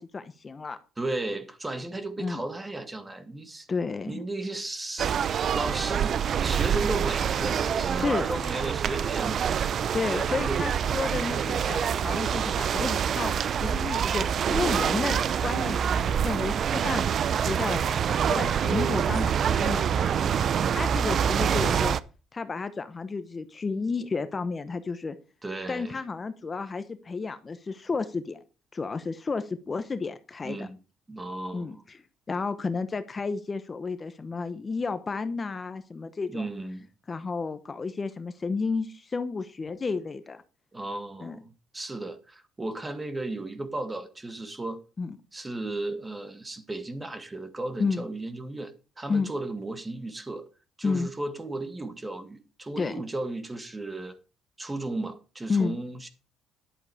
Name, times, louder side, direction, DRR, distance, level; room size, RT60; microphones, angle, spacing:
voice 1, 0.0-0.8 2.2-2.4 3.7-4.2 7.9-8.3 9.9-20.1 20.7-22.0 22.3-25.2 25.7-28.4 28.7-30.7 31.5-31.8 32.3-36.5 37.1-40.4 41.2-41.4 45.0-45.2 47.8-48.0 49.1-49.3 50.8-51.1 52.8-52.9 55.5-55.8, left 4 dB, 30° left, 0.9 m, -31 dB
voice 2, 1.0-3.7 4.1-5.1 5.5-9.4 10.1-10.7 19.4-20.8 25.4-26.0 30.4-30.8 31.1-31.8 36.3-36.9 40.7-44.8 45.3-50.5 50.8-54.2 54.6-56.1, right 2 dB, 15° right, 1.8 m, -35 dB
sound 1, 5.0-22.0, right 8 dB, 55° right, 0.6 m, -26 dB
11.0 x 8.0 x 4.9 m
cardioid pair, 100°, 0 cm